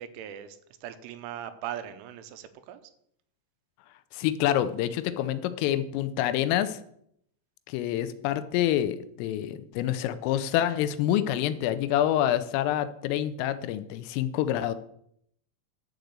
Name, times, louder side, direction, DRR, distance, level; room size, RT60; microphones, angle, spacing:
voice 1, 0.0-2.8, right 10 dB, 80° right, 11 dB, 3.1 m, -39 dB
voice 2, 4.1-6.8 7.7-14.7, left 12 dB, 85° left, 12 dB, 3.3 m, -27 dB
10.5 x 4.9 x 7.9 m, 0.71 s
omnidirectional pair, 5.8 m